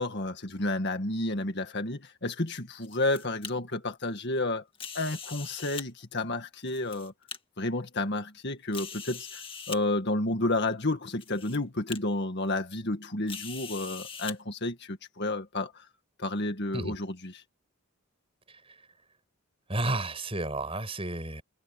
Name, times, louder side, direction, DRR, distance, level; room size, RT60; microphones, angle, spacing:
voice 1, 0.0-4.6 4.9-7.1 7.6-15.9 16.2-17.4, left 2 dB, 50° left, 1.9 m, -31 dB
sound 1, 2.8-3.5 4.8-5.9 6.6-7.4 8.0-8.1 8.7-9.8 10.7-10.8 11.2-11.6 11.9-12.0 13.3-14.4, left 6 dB, 25° left, 2.0 m, -41 dB
voice 2, 18.5-18.9 19.7-21.4, right 2 dB, 25° right, 6.4 m, -32 dB
head